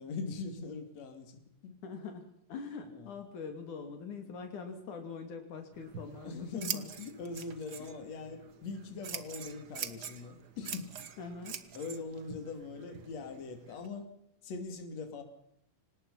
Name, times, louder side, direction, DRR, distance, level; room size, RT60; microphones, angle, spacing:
voice 1, 0.0-1.7 2.9-3.2 6.2-11.0 11.7-14.1 14.4-15.2, left 4 dB, 55° left, 6 dB, 3.8 m, -42 dB
voice 2, 1.8-6.9 11.2-11.6, left 5 dB, 70° left, 6 dB, 3.9 m, -43 dB
Scissors, 5.7-13.9, right 7 dB, 45° right, 1.3 m, -44 dB
26.0 x 19.0 x 5.7 m, 0.72 s
omnidirectional pair, 3.6 m